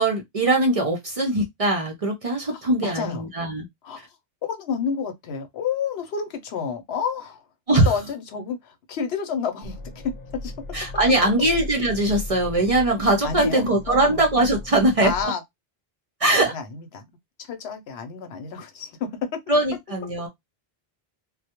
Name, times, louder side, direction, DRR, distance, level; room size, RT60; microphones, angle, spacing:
voice 1, 0.0-3.7 7.7-7.9 10.7-15.1 16.2-16.5 19.5-20.3, right 1 dB, 45° right, 0.5 m, -21 dB
voice 2, 2.5-3.3 3.8-4.2 4.4-7.4 7.9-10.5 13.2-14.2 15.0-15.4 16.4-17.0 17.4-19.4, left 6 dB, 80° left, 0.9 m, -30 dB
sound 1, 9.6-15.3, left 2 dB, 55° left, 0.3 m, -37 dB
2.2 x 2.0 x 2.8 m
omnidirectional pair, 1.0 m